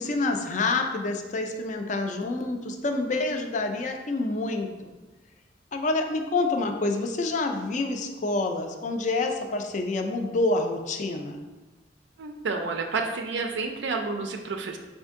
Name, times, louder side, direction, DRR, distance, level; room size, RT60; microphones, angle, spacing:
voice 1, 0.0-4.9 5.7-11.4, left 2 dB, 40° left, 5 dB, 0.4 m, -27 dB
voice 2, 12.2-14.8, right 4 dB, 70° right, 4 dB, 0.4 m, -30 dB
4.3 x 2.6 x 3.5 m, 1.2 s
head